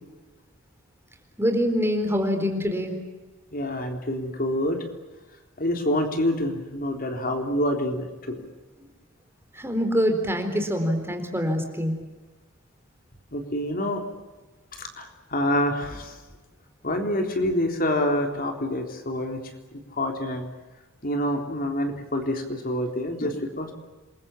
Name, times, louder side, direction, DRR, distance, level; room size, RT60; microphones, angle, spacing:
voice 1, 1.4-3.0 9.5-12.0, equal, 10° right, 5 dB, 4.1 m, -25 dB
voice 2, 3.5-4.8 5.6-8.4 13.3-14.0 14.8-16.2 16.8-19.4 19.7-20.5 21.0-23.7, left 1 dB, 45° left, 4 dB, 3.8 m, -27 dB
28.0 x 22.5 x 8.6 m, 1.2 s
head